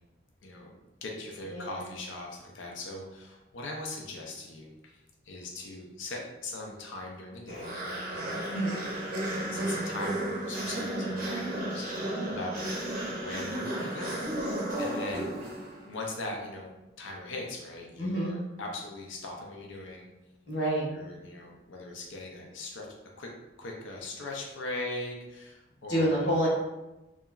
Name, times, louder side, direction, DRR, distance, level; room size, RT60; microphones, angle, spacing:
voice 1, 1.0-8.8 9.1-12.6 13.1-15.3 15.9-20.1 20.9-22.9 23.2-26.4, left 2 dB, 80° left, 0 dB, 0.4 m, -40 dB
voice 2, 1.5-1.8 8.5-8.8 18.0-18.3 20.5-20.8 25.9-26.5, right 1 dB, 60° left, -6 dB, 1.0 m, -28 dB
sound 1, 7.5-15.9, right 1 dB, 45° right, 0.6 m, -33 dB
2.8 x 2.3 x 2.3 m, 1.0 s
head